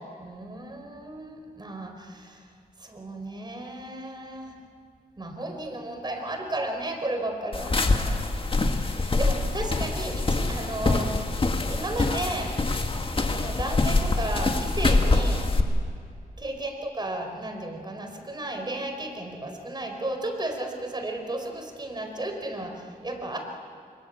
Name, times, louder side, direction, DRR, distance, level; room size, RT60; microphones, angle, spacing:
voice 1, 0.0-2.4 2.8-4.5 5.2-11.1 11.7-12.6 13.3-15.5 16.4-23.4, right 1 dB, 30° right, 4 dB, 4.8 m, -34 dB
sound 1, 7.5-15.6, left 3 dB, 35° left, 2.1 m, -25 dB
25.5 x 22.5 x 8.5 m, 2.3 s
wide cardioid pair, 90°, 15 cm